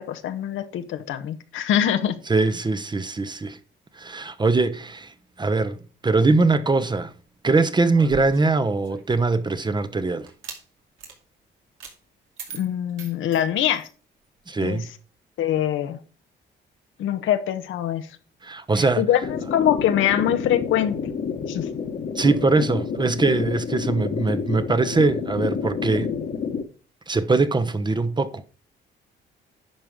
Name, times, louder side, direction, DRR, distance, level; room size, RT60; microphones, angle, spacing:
voice 1, 0.0-2.2 12.5-13.9 14.6-14.9 15.4-16.0 17.0-18.2 18.7-21.0 21.5-21.7, left 10 dB, 80° left, 1.1 m, -24 dB
voice 2, 2.3-3.6 3.9-7.1 7.4-10.3 14.5-14.9 18.4-19.0 22.2-26.1 27.1-28.4, right 3 dB, 20° right, 0.9 m, -22 dB
sound 1, 7.9-9.5 10.3-10.6 11.0-11.2 11.8-12.0 12.4-13.9, right 6 dB, 85° right, 2.4 m, -40 dB
sound 2, 19.2-26.6, left 6 dB, 50° left, 1.4 m, -29 dB
11.0 x 4.6 x 5.1 m
cardioid pair, 90°, 20 cm